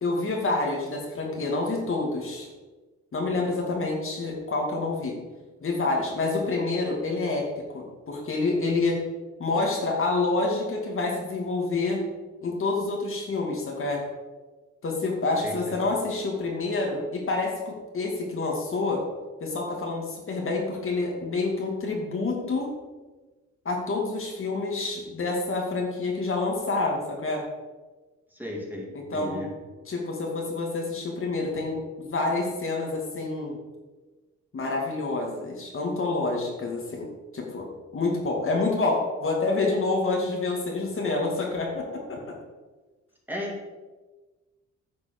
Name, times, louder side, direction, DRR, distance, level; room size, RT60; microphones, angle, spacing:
voice 1, 0.0-2.5 3.1-5.1 5.6-9.0 9.4-12.0 12.4-14.0 14.8-19.0 19.4-22.7 23.6-27.4 28.9-29.4 29.9-33.6 34.5-37.1 37.3-37.7 37.9-42.3, left 3 dB, 45° left, 0 dB, 2.5 m, -28 dB
voice 2, 28.3-28.9 29.1-29.5 43.3-43.6, left 1 dB, 5° right, -2 dB, 2.8 m, -34 dB
10.5 x 6.0 x 6.0 m, 1.2 s
cardioid pair, 90°, 30 cm